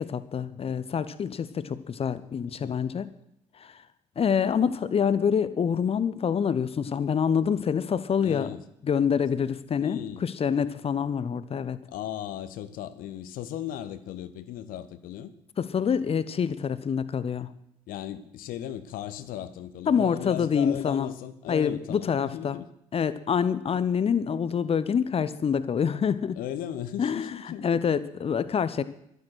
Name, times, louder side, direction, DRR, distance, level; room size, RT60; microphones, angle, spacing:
voice 1, 0.0-3.1 3.6-3.7 4.2-8.5 8.8-11.8 15.6-17.5 19.9-21.1 21.5-22.6 22.9-26.4 27.0-27.3 27.6-28.8, left 7 dB, 35° left, 1.1 m, -26 dB
voice 2, 2.4-2.9 8.2-8.6 9.8-10.2 11.9-15.3 17.9-22.7 26.4-27.8, left 11 dB, 55° left, 1.1 m, -37 dB
13.5 x 12.0 x 6.2 m
figure-of-eight pair, 45°, 17 cm